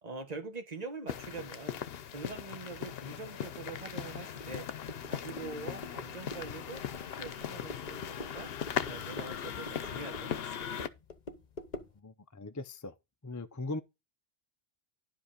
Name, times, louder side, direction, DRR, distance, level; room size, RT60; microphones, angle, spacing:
voice 1, 0.0-1.8 2.1-4.7 5.0-6.8 7.2-8.5 8.8-10.9, right 3 dB, 40° right, 1.6 m, -44 dB
sound 1, 1.1-10.9, left 8 dB, 70° left, 0.9 m, -39 dB
sound 2, 4.4-12.0, left 2 dB, 45° left, 1.1 m, -47 dB
voice 2, 12.0-13.0 13.2-13.8, left 2 dB, 25° left, 0.4 m, -39 dB
11.0 x 5.1 x 5.0 m
omnidirectional pair, 1.1 m